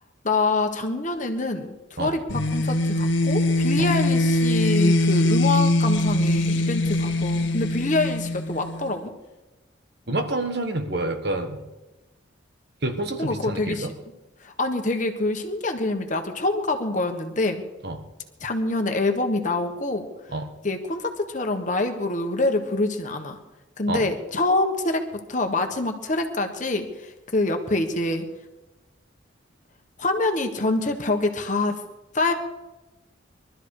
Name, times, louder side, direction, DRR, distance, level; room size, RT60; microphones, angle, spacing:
voice 1, 0.2-9.1 13.2-13.9 14.4-17.6 18.4-20.1 20.6-23.4 23.8-25.0 25.3-28.2 30.0-31.8 32.1-32.3, left 2 dB, 40° left, 5 dB, 1.5 m, -25 dB
sound 1, 2.3-8.9, left 1 dB, 65° left, 1.2 m, -22 dB
voice 2, 10.1-11.6 12.8-13.9 17.8-18.0 20.3-20.5 23.9-24.0, right 2 dB, 55° right, 6 dB, 1.5 m, -28 dB
22.5 x 12.5 x 4.9 m, 1.1 s
head